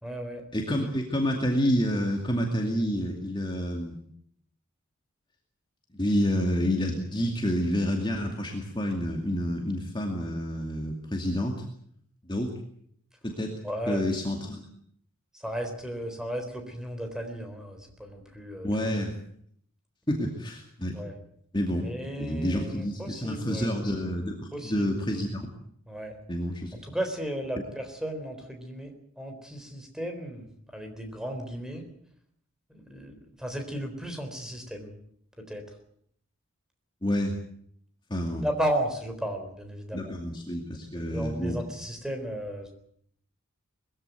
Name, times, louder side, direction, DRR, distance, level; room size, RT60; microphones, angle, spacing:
voice 1, 0.0-0.4 13.6-14.0 15.3-18.7 20.9-21.1 21.8-23.7 24.5-24.9 25.9-26.2 26.8-30.5 30.7-31.9 32.7-34.9 35.4-35.6 38.4-40.2 40.9-42.7, equal, 5° right, 5 dB, 3.9 m, -34 dB
voice 2, 0.5-4.0 5.9-11.6 12.3-12.5 13.4-13.5 13.9-14.6 18.6-19.2 20.1-20.9 21.5-21.9 22.2-25.5 26.3-26.9 37.0-37.4 38.1-38.5 39.9-41.6, equal, 20° left, 1 dB, 2.4 m, -28 dB
21.5 x 15.5 x 9.2 m, 0.67 s
head